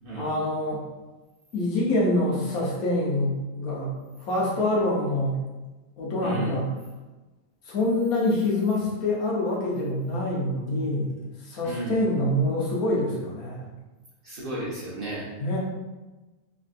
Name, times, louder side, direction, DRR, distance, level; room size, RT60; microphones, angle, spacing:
voice 1, 0.1-0.8 1.5-5.4 6.0-6.7 7.6-13.7 15.4-15.6, left 1 dB, 85° left, -5 dB, 1.3 m, -26 dB
voice 2, 11.6-12.0 14.2-15.3, right 1 dB, 50° right, -7 dB, 0.7 m, -33 dB
3.5 x 2.6 x 2.4 m, 1.2 s
omnidirectional pair, 1.5 m